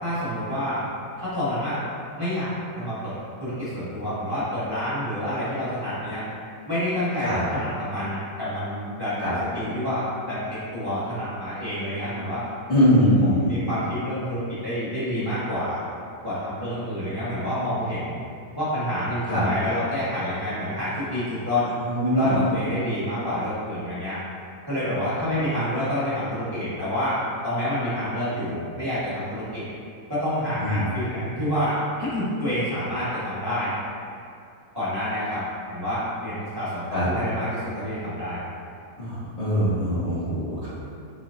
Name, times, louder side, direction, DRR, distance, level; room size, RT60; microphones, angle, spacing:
voice 1, 0.0-0.8 1.2-1.8 2.2-6.2 6.7-12.4 13.2-15.8 16.2-18.2 18.5-21.7 22.1-24.2 24.7-29.6 30.1-33.7 34.7-35.4 35.7-38.4, equal, 15° right, -13 dB, 1.2 m, -28 dB
voice 2, 12.7-13.6 19.3-19.4 21.8-22.4 30.6-30.8 36.9-37.1 39.0-40.7, equal, 60° left, -12 dB, 0.4 m, -22 dB
5.4 x 2.5 x 2.5 m, 2.5 s
omnidirectional pair, 1.8 m